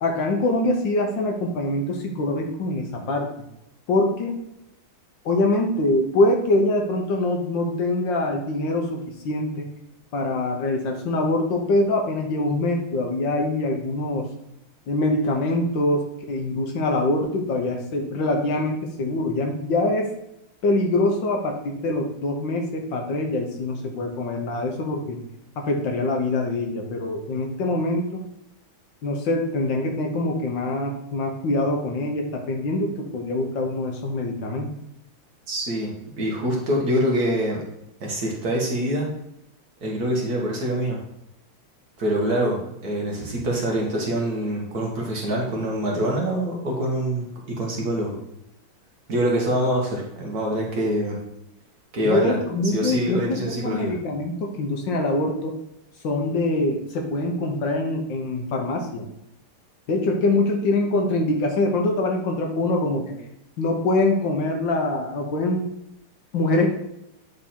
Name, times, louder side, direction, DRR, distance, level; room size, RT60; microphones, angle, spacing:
voice 1, 0.0-3.3 3.9-4.4 5.2-9.7 10.1-14.3 14.9-20.1 20.6-25.2 25.6-28.2 29.0-34.7 52.0-55.6 56.0-59.1 59.9-63.1 63.6-65.7 66.3-66.7, left 2 dB, 65° left, 2 dB, 1.5 m, -24 dB
voice 2, 35.5-37.6 38.0-39.1 39.8-41.0 42.0-47.3 47.6-48.1 49.1-51.2 51.9-52.4 52.7-53.9, right 1 dB, 50° right, -2 dB, 1.7 m, -25 dB
8.8 x 3.6 x 4.3 m, 0.81 s
omnidirectional pair, 2.3 m